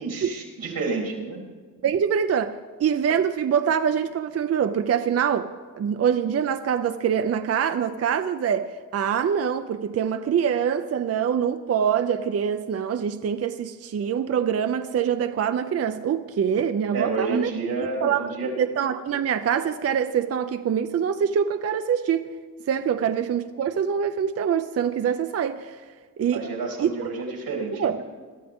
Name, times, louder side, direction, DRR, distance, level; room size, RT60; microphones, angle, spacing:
voice 1, 0.0-1.4 16.9-18.5 22.9-23.0 26.3-28.0, right 4 dB, 90° right, 0 dB, 3.4 m, -29 dB
voice 2, 1.8-5.5 5.8-17.5 17.8-22.3 22.7-25.8 26.2-26.4 26.8-26.9 27.8-28.0, right 8 dB, 45° right, 9 dB, 0.5 m, -24 dB
21.5 x 13.5 x 3.6 m, 1.5 s
wide cardioid pair, 170°, 34 cm